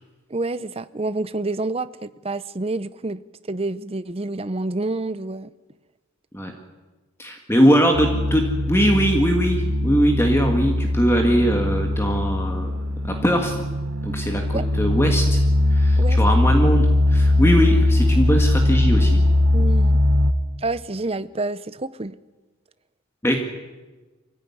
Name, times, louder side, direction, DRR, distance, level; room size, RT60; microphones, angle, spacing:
voice 1, 0.3-3.2 3.5-5.5 14.5-14.6 16.0-16.2 19.5-20.0 20.6-22.2, right 2 dB, 25° right, 15 dB, 0.6 m, -28 dB
voice 2, 7.2-12.7 13.0-13.6 14.0-15.4 15.7-19.2 23.2-23.4, equal, 10° left, 3 dB, 1.9 m, -21 dB
sound 1, 7.9-20.3, left 1 dB, 90° right, 1.3 m, -20 dB
24.0 x 16.0 x 9.8 m, 1.2 s
head